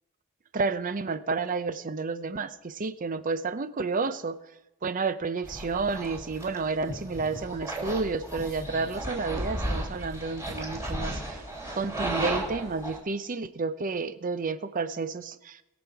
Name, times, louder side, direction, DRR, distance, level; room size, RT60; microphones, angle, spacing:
voice 1, 0.5-4.4 4.8-11.4 11.7-15.6, right 4 dB, 40° right, 13 dB, 0.6 m, -31 dB
sound 1, 5.4-13.0, right 1 dB, 15° right, 3.2 m, -34 dB
21.0 x 7.1 x 4.7 m, 0.93 s
head